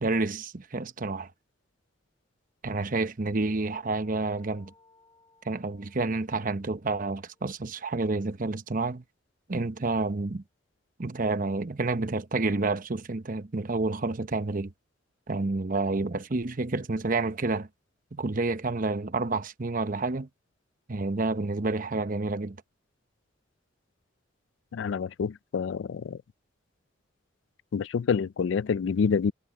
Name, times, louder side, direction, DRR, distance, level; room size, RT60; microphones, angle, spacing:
voice 1, 0.0-1.3 2.6-4.7 5.4-9.0 9.5-10.4 11.0-14.7 15.3-17.7 18.1-20.3 20.9-22.6, right 3 dB, 45° right, 0.9 m, -29 dB
sound 1, 3.6-8.4, left 3 dB, 25° left, 5.9 m, -64 dB
voice 2, 24.7-26.2 27.7-29.3, left 6 dB, 75° left, 0.4 m, -27 dB
head